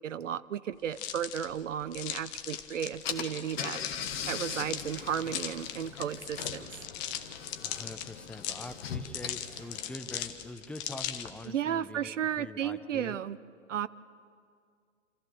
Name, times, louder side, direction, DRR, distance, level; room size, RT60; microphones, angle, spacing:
voice 1, 0.0-3.8 4.3-6.9 11.5-13.4 13.7-13.9, right 9 dB, 75° right, 17 dB, 0.7 m, -34 dB
sound 1, 0.9-11.5, left 11 dB, 35° left, 1.2 m, -39 dB
Car / Engine, 2.6-2.7 3.0-10.5, left 8 dB, 50° left, 1.6 m, -40 dB
Dishes pots and pans, 4.6-9.9 10.2-10.3, right 1 dB, 20° right, 5.7 m, -57 dB
voice 2, 7.6-13.2, left 2 dB, 5° left, 8 dB, 0.6 m, -44 dB
27.5 x 14.5 x 6.9 m, 2.2 s
figure-of-eight pair, 115°, 38 cm